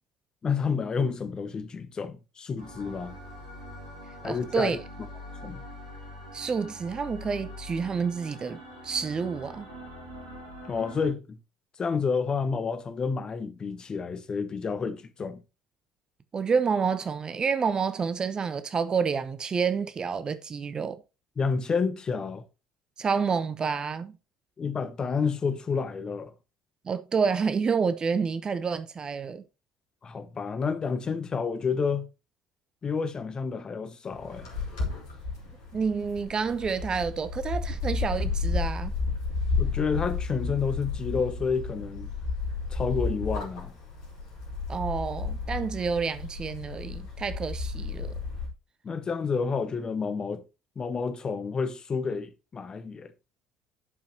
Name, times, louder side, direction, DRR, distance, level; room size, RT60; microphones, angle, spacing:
voice 1, 0.4-3.2 4.2-4.7 5.4-5.6 10.7-11.4 11.8-15.4 21.4-22.4 24.6-26.3 30.0-32.1 32.8-34.5 39.6-42.1 42.7-43.7 48.8-50.4 50.8-53.1, left 5 dB, 30° left, 1.1 m, -29 dB
sound 1, 2.6-11.1, equal, 80° right, 2.7 m, -44 dB
voice 2, 4.2-4.8 6.3-8.6 8.8-9.7 16.3-21.0 23.0-24.2 26.8-29.4 35.7-38.9 44.7-48.1, right 5 dB, 30° right, 0.9 m, -29 dB
sound 2, 34.1-48.5, left 4 dB, 70° left, 3.3 m, -32 dB
11.0 x 5.7 x 2.9 m
figure-of-eight pair, 55°, 3 cm